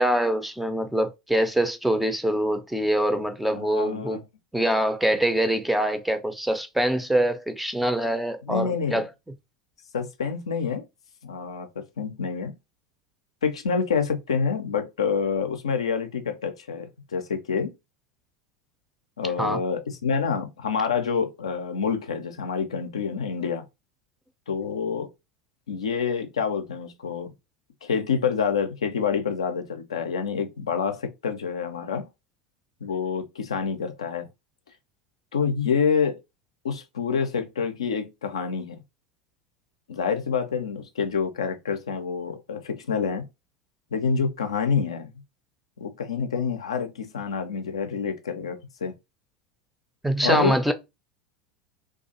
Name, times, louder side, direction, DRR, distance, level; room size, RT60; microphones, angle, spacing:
voice 1, 0.0-4.2 4.5-9.1 19.4-19.6 50.0-50.7, right 1 dB, 5° right, 0.4 m, -24 dB
voice 2, 3.5-4.2 8.5-9.0 9.9-10.8 11.2-12.5 13.4-17.7 19.2-23.6 24.5-25.1 25.7-27.3 27.8-32.1 32.8-34.3 35.3-36.2 36.6-38.8 39.9-43.3 43.9-45.1 45.8-48.9 50.2-50.6, left 6 dB, 80° left, 0.4 m, -27 dB
2.4 x 2.3 x 2.6 m
figure-of-eight pair, 80°, 3 cm